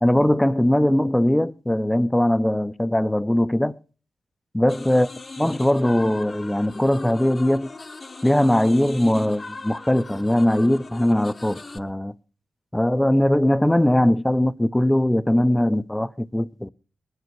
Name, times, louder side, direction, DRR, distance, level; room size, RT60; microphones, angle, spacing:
voice 1, 0.0-3.7 4.5-5.1 5.4-7.7 8.2-12.1 12.7-16.7, left 1 dB, 10° left, 0.6 m, -20 dB
sound 1, 4.7-11.8, left 3 dB, 35° left, 0.8 m, -39 dB
21.0 x 9.4 x 4.6 m
wide cardioid pair, 100°, 0 cm